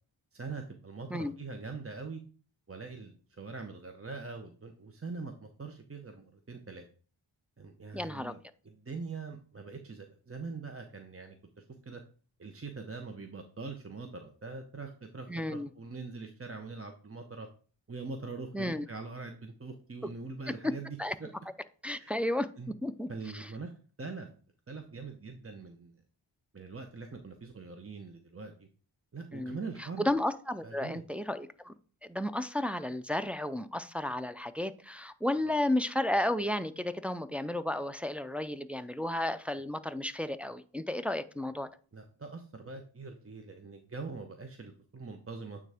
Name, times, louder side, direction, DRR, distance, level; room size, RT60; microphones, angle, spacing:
voice 1, 0.3-2.2 2.7-6.8 7.6-8.4 8.6-12.0 12.4-17.5 17.9-21.3 22.0-22.3 22.6-22.7 23.1-23.7 24.0-24.3 24.7-26.0 26.5-28.7 29.1-30.1 30.6-31.0 35.4-35.7 41.9-45.6, right 4 dB, 30° right, 5 dB, 0.8 m, -43 dB
voice 2, 7.9-8.3 15.3-15.7 18.5-18.9 20.5-20.7 21.0-21.2 21.8-22.5 22.8-23.5 29.3-31.7 32.0-41.7, left 1 dB, 5° right, 9 dB, 0.4 m, -33 dB
9.1 x 3.6 x 3.4 m, 0.41 s
cardioid pair, 40°, 48 cm